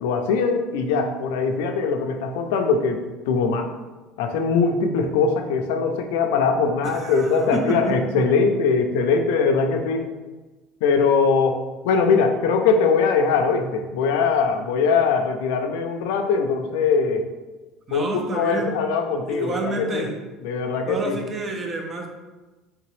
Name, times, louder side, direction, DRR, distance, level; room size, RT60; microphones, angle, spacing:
voice 1, 0.0-3.0 3.3-3.7 4.2-10.1 10.8-17.3 17.9-20.1 20.4-21.2, left 5 dB, 90° left, 5 dB, 0.3 m, -21 dB
voice 2, 6.8-8.0 17.9-18.8 19.3-20.1 20.8-22.1, right 2 dB, 25° right, 3 dB, 0.5 m, -29 dB
3.3 x 2.8 x 3.0 m, 1.2 s
cardioid pair, 130°, 0 cm